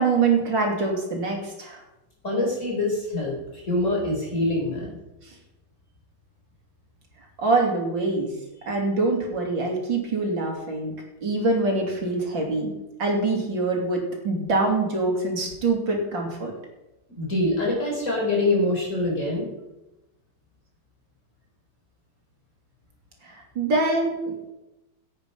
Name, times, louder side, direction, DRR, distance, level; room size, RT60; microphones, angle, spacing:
voice 1, 0.0-1.8 5.3-5.4 7.4-8.3 8.7-10.9 11.2-12.7 13.0-16.5 23.2-24.5, right 3 dB, 65° right, 0 dB, 3.3 m, -24 dB
voice 2, 2.2-5.0 17.2-19.5, left 2 dB, 35° left, -2 dB, 4.9 m, -25 dB
16.5 x 8.4 x 5.4 m, 0.96 s
omnidirectional pair, 2.2 m